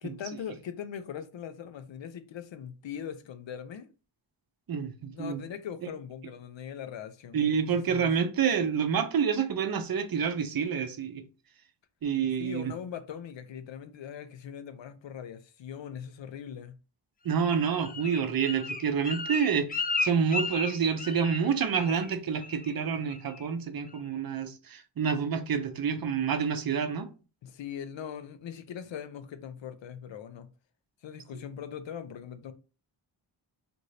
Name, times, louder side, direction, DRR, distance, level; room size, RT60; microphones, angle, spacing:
voice 1, 0.0-3.9 5.1-8.1 12.4-16.8 27.4-30.5 31.0-32.5, left 8 dB, 65° left, 0.6 m, -41 dB
voice 2, 4.7-5.4 5.8-5.9 7.3-11.2 12.0-12.7 17.2-27.1, right 6 dB, 50° right, 0.6 m, -28 dB
Bird, 17.4-21.5 21.8-22.1 22.4-22.8 23.1-23.5 23.9-24.0, left 3 dB, 20° left, 0.3 m, -34 dB
2.6 x 2.6 x 3.1 m
cardioid pair, 65°, 49 cm